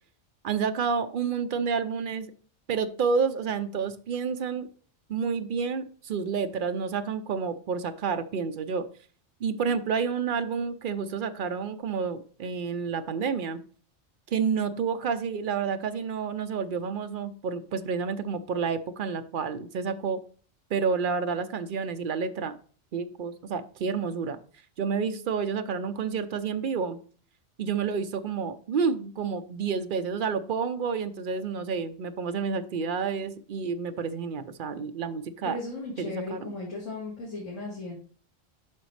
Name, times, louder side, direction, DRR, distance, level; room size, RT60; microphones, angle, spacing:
voice 1, 0.4-2.3 2.7-4.7 5.1-8.8 9.4-13.6 14.3-20.2 20.7-22.5 22.9-24.4 24.8-27.0 27.6-35.6 36.0-36.6, right 5 dB, 55° right, 10 dB, 0.6 m, -29 dB
voice 2, 35.4-37.9, left 2 dB, 75° left, -5 dB, 2.4 m, -36 dB
11.0 x 4.0 x 3.2 m, 0.42 s
omnidirectional pair, 1.3 m